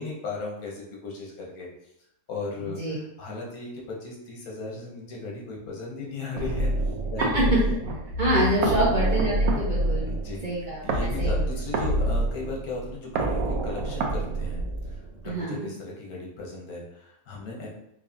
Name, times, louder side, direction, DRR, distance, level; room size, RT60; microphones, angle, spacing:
voice 1, 0.0-1.7 2.3-6.7 7.1-7.4 8.6-8.8 10.1-10.4 10.8-14.6 15.2-17.7, left 3 dB, 80° left, -2 dB, 1.4 m, -36 dB
voice 2, 2.6-3.0 7.2-7.6 8.2-10.1 10.4-11.4 15.2-15.7, right 1 dB, 45° right, -6 dB, 0.7 m, -26 dB
sound 1, 6.4-15.3, right 1 dB, 75° right, 1.1 m, -27 dB
4.7 x 2.7 x 2.6 m, 0.76 s
omnidirectional pair, 1.6 m